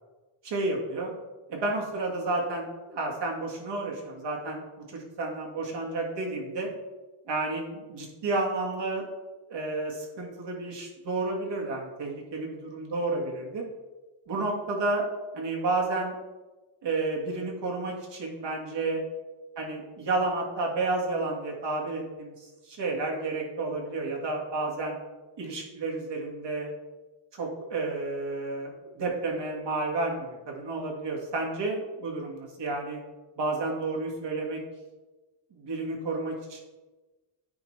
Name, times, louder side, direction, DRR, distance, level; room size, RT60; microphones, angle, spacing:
voice 1, 0.4-1.1 1.5-4.6 4.9-6.7 7.3-9.1 9.5-13.6 14.3-15.1 15.3-16.2 16.8-19.0 19.6-22.3 22.7-25.0 25.4-26.7 27.3-28.7 29.0-33.0 33.4-34.6 35.5-36.6, right 2 dB, 60° right, -1 dB, 1.9 m, -31 dB
9.5 x 4.7 x 3.2 m, 1.2 s
cardioid pair, 105°, 48 cm